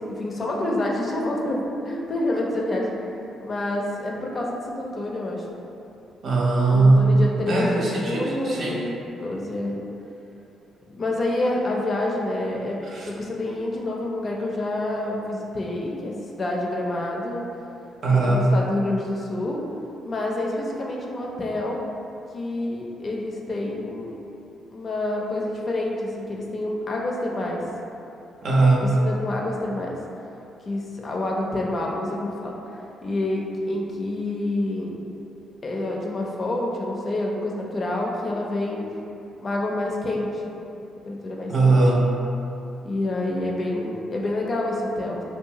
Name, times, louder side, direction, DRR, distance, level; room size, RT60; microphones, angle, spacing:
voice 1, 0.0-5.5 6.7-9.8 10.9-12.8 13.0-17.4 18.1-19.6 20.0-21.8 22.3-24.2 24.7-27.6 28.8-30.0 30.7-34.9 35.6-38.9 39.4-40.4 41.0-41.8 42.8-45.2, left 1 dB, 45° left, -2 dB, 0.4 m, -28 dB
voice 2, 6.2-7.2 7.5-8.8 12.8-13.1 18.0-18.5 28.4-29.0 41.5-42.1, right 3 dB, 60° right, -3 dB, 0.5 m, -19 dB
2.7 x 2.2 x 2.8 m, 2.8 s
supercardioid pair, 65°, 0 cm